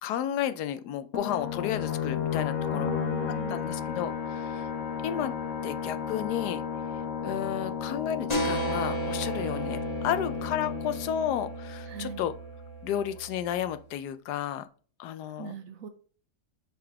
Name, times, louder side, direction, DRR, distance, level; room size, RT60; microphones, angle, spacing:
voice 1, 0.0-2.9 3.5-4.7 5.0-5.3 5.6-6.6 7.2-12.3 12.8-14.6 15.0-15.6, left 10 dB, 80° left, 11 dB, 1.1 m, -32 dB
sound 1, 1.1-12.4, left 8 dB, 55° left, 1.4 m, -33 dB
voice 2, 2.7-3.6 11.9-12.2 15.4-15.9, right 7 dB, 60° right, 8 dB, 1.2 m, -39 dB
sound 2, 8.3-13.7, right 2 dB, 25° left, 1.3 m, -35 dB
5.6 x 4.0 x 4.6 m, 0.41 s
omnidirectional pair, 1.7 m